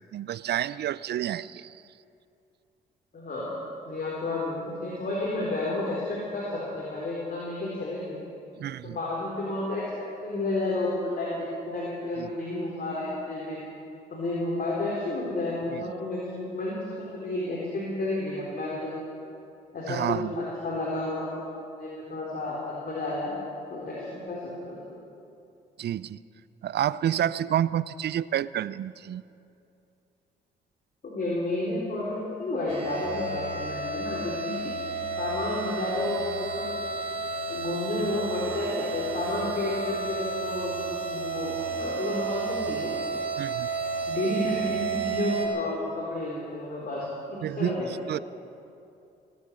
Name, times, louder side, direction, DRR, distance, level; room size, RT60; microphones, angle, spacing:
voice 1, 0.0-1.8 8.6-9.0 12.2-12.3 15.7-15.9 19.9-20.3 25.8-26.2 26.6-29.2 43.4-43.7 47.4-47.8 48.1-48.2, right 11 dB, 55° right, 19 dB, 0.5 m, -29 dB
voice 2, 3.1-3.5 3.8-8.2 8.8-9.9 10.2-11.4 11.7-13.6 14.1-19.0 19.7-21.5 21.8-23.3 23.7-25.0 31.0-34.7 35.2-36.7 37.5-42.9 44.1-47.9, left 2 dB, 45° left, -5 dB, 4.0 m, -31 dB
sound 1, 32.7-45.5, right 4 dB, 35° right, 3.4 m, -32 dB
18.0 x 9.4 x 8.5 m, 2.6 s
supercardioid pair, 55°, 20 cm